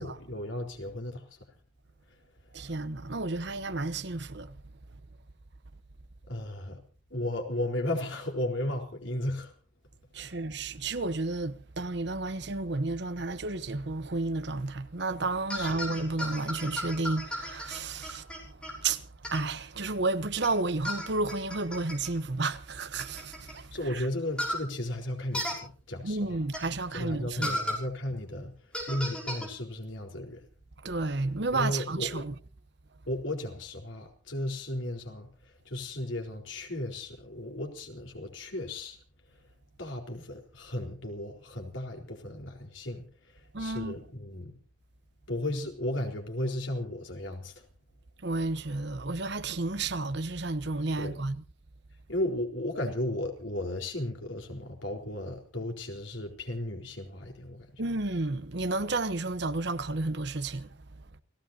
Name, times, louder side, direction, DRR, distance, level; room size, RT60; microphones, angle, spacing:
voice 1, 0.0-1.4 6.3-6.8 7.1-9.5 10.2-10.4 15.5-15.8 23.7-26.4 26.9-28.5 28.9-30.4 31.5-32.3 33.1-39.0 39.8-44.6 45.3-47.7 51.0-51.1 52.1-57.8, left 1 dB, 85° left, 4.2 m, -35 dB
voice 2, 2.5-4.6 10.1-24.0 26.0-27.6 30.8-32.3 43.5-43.9 48.2-51.4 57.8-60.8, right 3 dB, 60° right, 1.0 m, -32 dB
sound 1, 15.5-18.7 19.2-19.4 20.4-20.5 20.9-22.1 23.0-23.5 24.4-24.6 25.3-25.6 26.5-26.6 27.4-27.8 28.7-29.5, left 1 dB, 5° left, 6.1 m, -34 dB
29.5 x 17.0 x 2.8 m
head